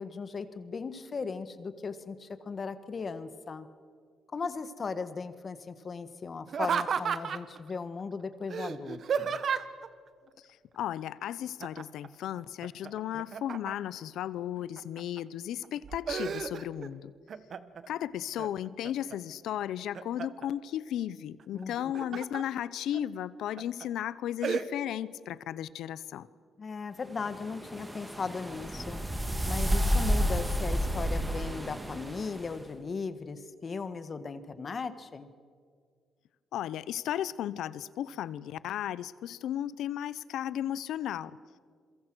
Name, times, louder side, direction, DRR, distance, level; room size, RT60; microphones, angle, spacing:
voice 1, 0.0-3.7 4.3-9.4 21.5-22.2 26.6-29.0 29.4-35.3, left 4 dB, 40° left, 12 dB, 1.5 m, -37 dB
Laughter, 6.5-7.6 8.5-9.9 11.6-12.1 12.4-14.0 14.6-15.2 15.6-16.9 17.3-17.9 18.4-19.2 19.6-20.5 21.6-22.4 22.9-23.0 23.6-23.9 24.4-24.7, right 7 dB, 55° right, 1.2 m, -33 dB
voice 2, 10.7-17.1 17.9-26.3 36.5-41.3, left 11 dB, 80° left, 18 dB, 0.8 m, -35 dB
sound 1, 27.2-32.5, equal, 15° right, 2.4 m, -30 dB
28.5 x 23.0 x 6.3 m, 2.1 s
cardioid pair, 90°, 0 cm